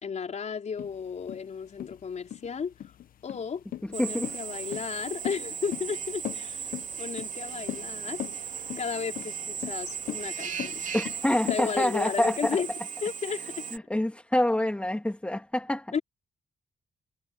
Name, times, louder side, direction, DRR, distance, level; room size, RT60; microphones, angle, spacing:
voice 1, 0.0-2.7 3.2-3.6 3.9-6.7 7.0-8.2 8.8-10.8 11.4-12.7 13.0-13.7 15.9-16.0, left 6 dB, 50° left, 4.9 m, -34 dB
sound 1, 0.8-11.6, left 12 dB, 75° left, 0.9 m, -38 dB
voice 2, 3.8-4.3 10.9-12.6 13.7-15.9, left 1 dB, 10° left, 2.4 m, -27 dB
Drill, 3.9-13.8, right 7 dB, 60° right, 2.9 m, -37 dB
cardioid pair, 100°, 15 cm